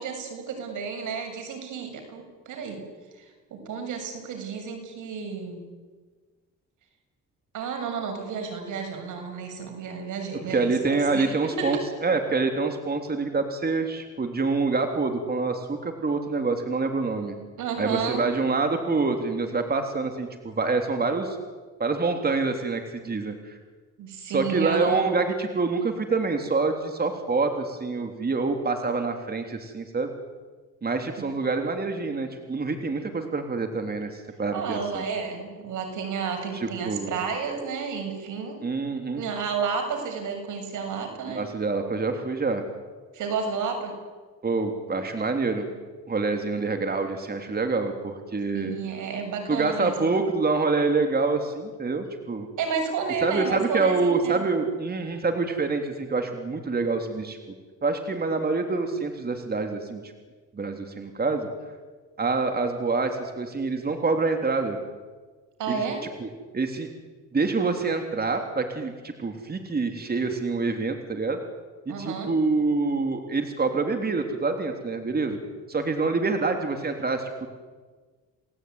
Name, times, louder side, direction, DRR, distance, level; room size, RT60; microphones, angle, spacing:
voice 1, 0.0-2.8 3.2-5.7 7.5-11.8 17.6-18.2 24.0-25.1 34.5-38.6 39.2-41.4 43.1-43.9 48.5-50.2 52.6-54.5 65.6-66.0 71.9-72.3, right 5 dB, 80° right, 4 dB, 7.2 m, -31 dB
voice 2, 10.5-17.4 17.8-21.4 21.8-23.6 24.3-30.1 30.8-35.0 36.5-37.1 38.6-39.2 41.3-42.6 44.4-45.7 46.1-48.8 49.5-52.5 53.2-57.4 57.8-60.1 60.5-61.5 62.2-64.8 65.7-65.8 66.2-66.9 67.3-71.4 71.9-75.4 75.7-77.5, right 3 dB, 30° right, 5 dB, 3.4 m, -26 dB
29.5 x 19.0 x 9.7 m, 1.4 s
cardioid pair, 90°, 30 cm